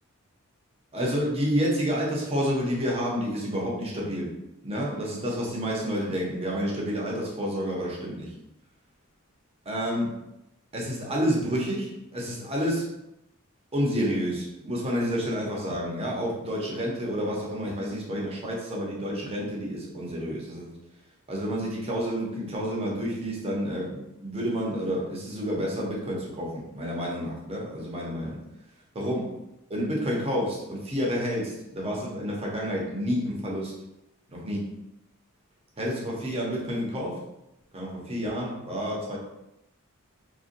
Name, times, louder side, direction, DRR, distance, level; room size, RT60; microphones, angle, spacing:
voice 1, 0.9-4.3 4.6-8.3 9.7-10.2 10.7-12.9 13.7-20.7 21.3-28.4 28.9-29.3 29.7-33.7 34.3-34.7 35.8-37.2 37.7-39.2, equal, 30° right, -3 dB, 0.6 m, -29 dB
2.5 x 2.1 x 2.5 m, 0.87 s
head